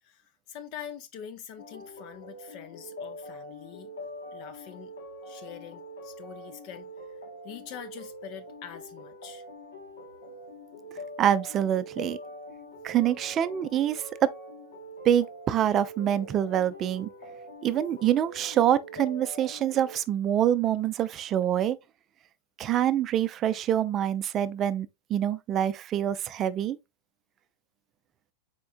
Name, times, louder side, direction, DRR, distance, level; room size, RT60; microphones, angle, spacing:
voice 1, 0.0-4.9 5.2-9.5, left 9 dB, 45° left, 0.5 m, -45 dB
sound 1, 1.6-20.0, left 1 dB, 65° left, 1.0 m, -44 dB
voice 2, 11.2-12.2 12.8-14.3 15.0-17.1 17.6-21.8 22.6-26.8, right 10 dB, 30° right, 0.4 m, -26 dB
4.4 x 4.3 x 2.5 m
figure-of-eight pair, 90°, 0 cm